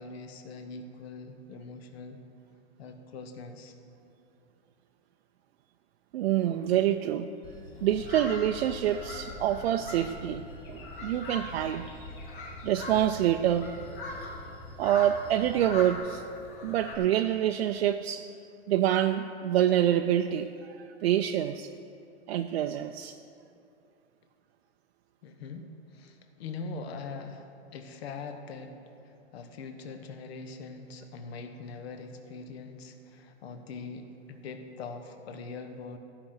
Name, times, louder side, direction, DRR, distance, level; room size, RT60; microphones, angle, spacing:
voice 1, 0.0-2.2 2.8-3.7 25.2-36.0, left 4 dB, 65° left, 6 dB, 1.1 m, -42 dB
voice 2, 6.1-7.3 7.8-10.4 10.7-11.9 12.6-13.7 14.8-16.2 16.6-18.3 18.7-21.7 22.3-23.2, right 11 dB, 70° right, 6 dB, 0.5 m, -26 dB
Bell / Train, 7.4-16.0, left 1 dB, 15° left, 0.9 m, -47 dB
sound 1, 7.7-17.0, left 2 dB, 50° left, 1.9 m, -42 dB
14.0 x 5.9 x 6.5 m, 2.6 s
supercardioid pair, 165°, 33 cm